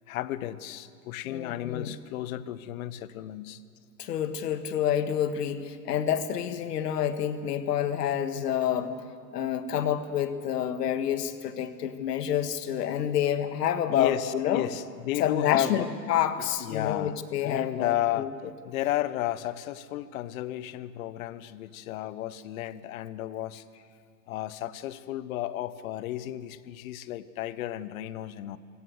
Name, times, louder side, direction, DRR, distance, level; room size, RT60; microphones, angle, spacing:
voice 1, 0.1-3.6 13.9-15.9 16.4-18.3 18.6-23.6 24.3-28.6, left 13 dB, 55° left, 16 dB, 1.1 m, -33 dB
voice 2, 1.3-2.0 4.0-8.9 9.3-14.7 15.2-18.3, left 9 dB, 70° left, 10 dB, 1.8 m, -28 dB
26.0 x 17.0 x 8.0 m, 2.1 s
hypercardioid pair, 140°, 49 cm